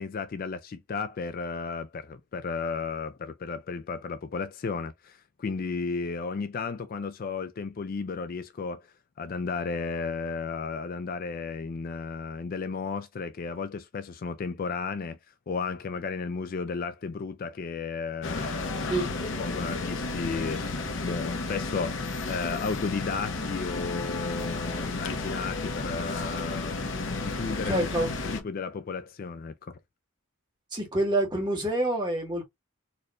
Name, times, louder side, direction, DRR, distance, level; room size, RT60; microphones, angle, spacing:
voice 1, 0.0-15.2 15.5-19.1 19.4-27.8 28.2-29.8, left 4 dB, 40° left, 0.3 m, -34 dB
sound 1, 18.2-28.4, left 3 dB, 60° left, 0.9 m, -32 dB
voice 2, 18.9-19.2 27.6-28.1 30.7-32.5, right 1 dB, 20° right, 1.7 m, -27 dB
4.4 x 3.0 x 2.5 m
head